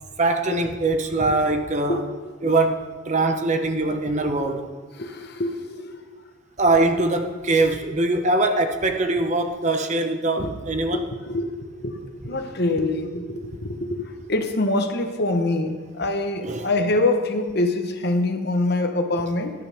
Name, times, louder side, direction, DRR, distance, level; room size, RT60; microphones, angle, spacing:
voice 1, 0.2-2.0 2.4-2.8 3.1-4.7 6.6-11.1 16.4-16.7, right 2 dB, 35° right, 6 dB, 0.9 m, -22 dB
voice 2, 5.0-6.0 10.9-19.5, left 2 dB, 50° left, 6 dB, 1.1 m, -25 dB
18.5 x 10.5 x 3.5 m, 1.4 s
head